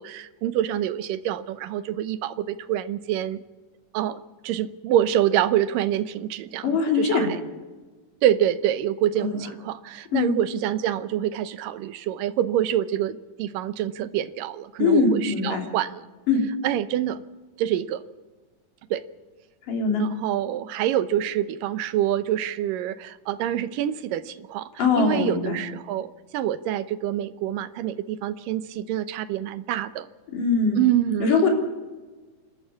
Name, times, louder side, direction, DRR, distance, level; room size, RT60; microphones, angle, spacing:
voice 1, 0.0-3.4 3.9-7.4 8.2-16.0 16.6-17.2 17.6-18.0 18.9-19.0 20.0-24.7 25.0-30.1 30.8-31.4, right 11 dB, 85° right, 13 dB, 2.5 m, -26 dB
voice 2, 6.6-7.3 9.2-9.4 10.1-10.4 14.8-15.6 16.3-16.4 19.7-20.0 24.8-25.6 30.3-30.8 31.2-31.5, left 4 dB, 75° left, 1 dB, 5.0 m, -22 dB
28.0 x 12.0 x 8.5 m, 1.3 s
omnidirectional pair, 3.9 m